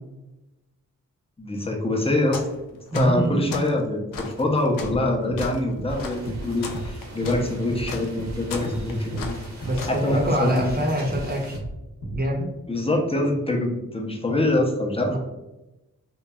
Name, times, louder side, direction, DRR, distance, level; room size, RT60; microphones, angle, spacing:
voice 1, 1.4-2.4 2.9-9.4 9.9-10.7 12.7-15.2, left 1 dB, 15° left, 0 dB, 0.7 m, -24 dB
sound 1, 2.3-2.6 2.9-3.7 4.1-10.0, left 4 dB, 80° left, 0.5 m, -35 dB
voice 2, 2.9-3.5 9.6-11.5 12.1-12.5 15.1-15.2, equal, 30° right, 0 dB, 0.7 m, -25 dB
sound 2, 4.8-5.0 5.3-5.5 5.8-5.9 6.3-6.4 6.7-6.9 7.2-7.4 7.7-7.9 8.2-8.3 8.6-8.8 9.1-9.3 9.6-9.8 10.1-10.3 10.6-10.7 11.1-11.2 11.5-11.7 12.0-12.2, right 1 dB, 60° left, 1.0 m, -33 dB
sound 3, 5.9-11.6, right 2 dB, 55° right, 0.9 m, -45 dB
2.9 x 2.6 x 2.3 m, 1.0 s
cardioid pair, 55°, 33 cm